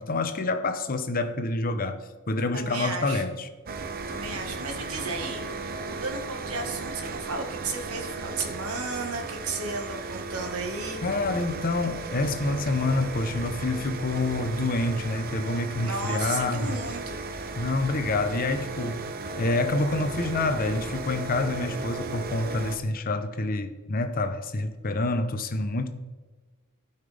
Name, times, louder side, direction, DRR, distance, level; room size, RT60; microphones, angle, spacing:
voice 1, 0.0-3.5 11.0-16.8 17.6-19.1 19.4-26.0, left 2 dB, 40° left, 0.8 m, -27 dB
voice 2, 2.5-3.2 4.1-11.0 15.8-17.2, right 3 dB, 85° right, 1.6 m, -34 dB
sound 1, 3.7-22.8, right 3 dB, 45° right, 0.7 m, -35 dB
16.0 x 5.7 x 3.4 m
head